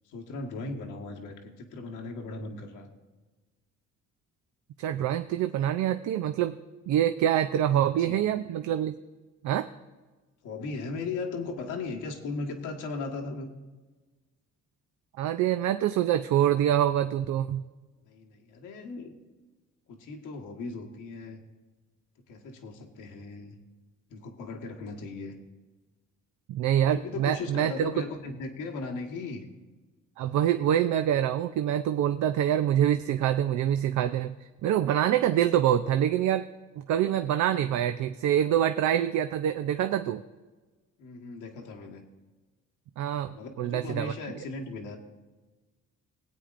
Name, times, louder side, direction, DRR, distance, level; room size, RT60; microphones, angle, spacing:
voice 1, 0.0-2.9 7.7-8.5 10.4-13.5 18.0-19.1 19.9-21.4 22.3-23.6 24.1-25.3 26.9-29.4 41.0-42.0 43.3-45.0, left 3 dB, 85° left, 1 dB, 1.5 m, -37 dB
voice 2, 4.8-6.6 6.9-8.9 9.4-9.7 15.2-17.6 26.5-27.9 30.2-34.4 34.6-36.5 36.8-40.2 43.0-44.1, right 11 dB, 75° right, 8 dB, 0.5 m, -25 dB
20.0 x 8.5 x 2.5 m, 1.2 s
cardioid pair, 90°, 30 cm